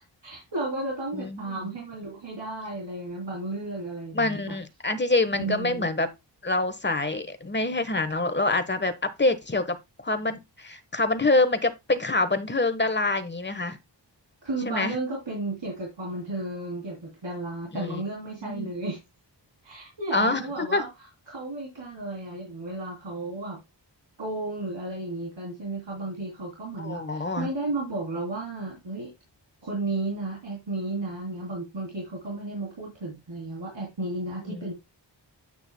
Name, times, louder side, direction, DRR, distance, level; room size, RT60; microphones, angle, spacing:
voice 1, 0.2-4.5 5.3-5.9 14.4-19.0 19.6-20.9 21.3-23.6 24.2-29.1 29.6-34.7, right 2 dB, 75° right, 3.3 m, -33 dB
voice 2, 1.1-1.7 4.1-6.1 6.4-9.8 10.0-13.8 14.6-14.9 17.7-18.0 18.4-18.7 20.1-20.8 26.8-27.5 34.5-34.7, left 2 dB, 25° left, 1.2 m, -26 dB
9.0 x 8.8 x 2.2 m
wide cardioid pair, 85°, 44 cm